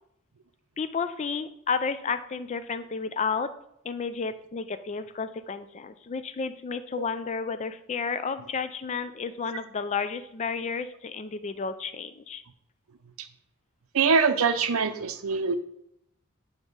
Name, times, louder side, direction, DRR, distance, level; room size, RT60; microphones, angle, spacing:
voice 1, 0.8-3.5 3.8-12.4, left 5 dB, 30° left, 11 dB, 0.4 m, -32 dB
voice 2, 13.9-15.6, right 5 dB, 75° right, 11 dB, 0.6 m, -23 dB
8.8 x 3.6 x 5.3 m, 0.76 s
head